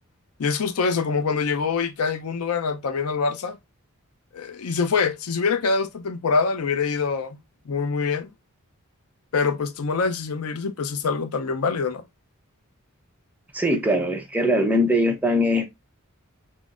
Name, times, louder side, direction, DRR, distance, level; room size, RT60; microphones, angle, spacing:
voice 1, 0.4-3.6 4.3-7.4 7.7-8.3 9.3-12.0, left 5 dB, 85° left, 0.5 m, -25 dB
voice 2, 13.5-15.7, equal, 5° right, 0.6 m, -21 dB
6.1 x 2.0 x 2.4 m
head